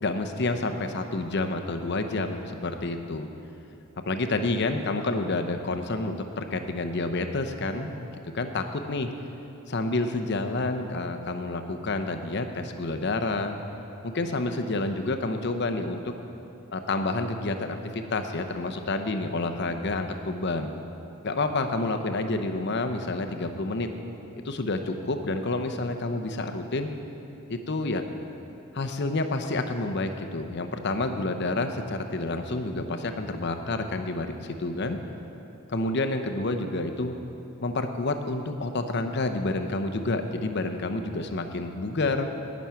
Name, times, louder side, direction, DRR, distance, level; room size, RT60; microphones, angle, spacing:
voice 1, 0.0-3.3 4.1-8.1 8.3-9.1 9.7-13.6 14.0-16.1 16.7-20.7 21.2-23.9 24.4-26.9 27.5-28.0 28.7-35.0 35.7-37.1 37.6-42.3, left 2 dB, 55° left, 6 dB, 0.7 m, -29 dB
18.5 x 6.2 x 5.8 m, 3.0 s
head